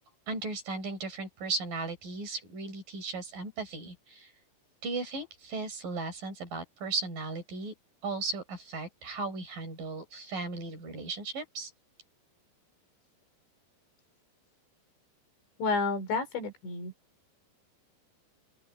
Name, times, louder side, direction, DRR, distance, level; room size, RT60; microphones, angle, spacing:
voice 1, 0.3-4.3 4.8-7.7 8.0-11.7, right 3 dB, 50° right, 6.6 m, -36 dB
voice 2, 15.6-16.9, left 4 dB, 75° left, 7.0 m, -30 dB
open air
omnidirectional pair, 5.2 m